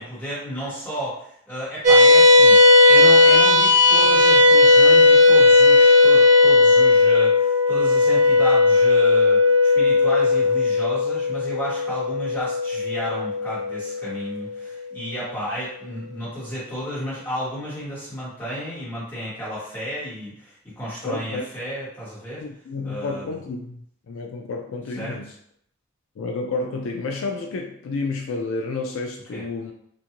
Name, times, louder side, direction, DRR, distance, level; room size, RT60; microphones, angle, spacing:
voice 1, 0.0-22.4 22.8-23.3 25.0-25.1 29.3-29.4, equal, 10° left, -11 dB, 1.4 m, -32 dB
sound 1, 1.8-14.5, left 3 dB, 35° right, 0.5 m, -15 dB
voice 2, 21.0-21.4 22.4-23.8 24.1-25.3 26.2-29.7, left 3 dB, 70° left, 2 dB, 0.3 m, -30 dB
2.5 x 2.5 x 2.9 m, 0.67 s
head